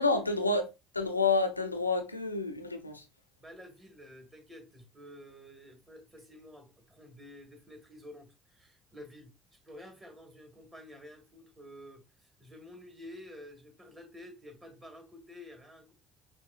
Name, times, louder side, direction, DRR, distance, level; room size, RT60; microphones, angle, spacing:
voice 1, 0.0-3.0, left 3 dB, 90° left, 0.5 m, -29 dB
voice 2, 3.4-9.3 9.6-15.9, left 1 dB, 20° right, 2.0 m, -50 dB
5.6 x 2.7 x 2.4 m
figure-of-eight pair, 55°, 0 cm